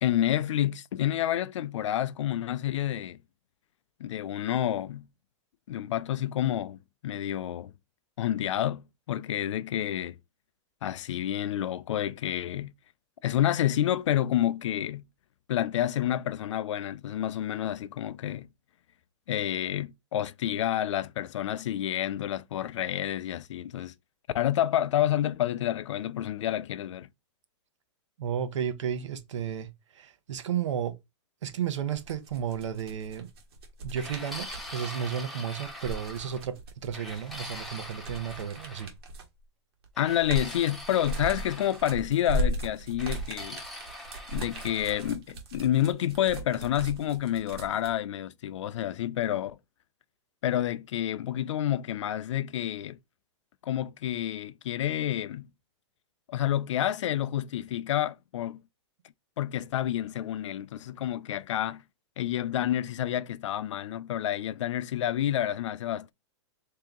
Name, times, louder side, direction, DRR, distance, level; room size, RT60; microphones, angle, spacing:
voice 1, 0.0-3.2 4.0-5.1 5.7-7.7 8.2-10.2 10.8-12.7 13.2-15.0 15.5-18.5 19.3-23.9 24.3-27.1 40.0-43.6 44.3-49.6 50.4-53.0 53.6-55.5 56.3-58.6 59.4-61.8 62.2-66.1, left 12 dB, 85° left, 0.4 m, -29 dB
voice 2, 28.2-31.0 31.4-33.3 33.8-38.9, right 8 dB, 85° right, 0.8 m, -33 dB
sound 1, 31.9-34.7 35.6-39.4 39.8-47.9, right 1 dB, 55° right, 1.2 m, -36 dB
sound 2, 34.0-36.5 36.9-38.9 40.0-42.0 43.0-45.1, left 1 dB, ahead, 0.5 m, -43 dB
3.5 x 2.8 x 3.7 m
supercardioid pair, 170°, 15 cm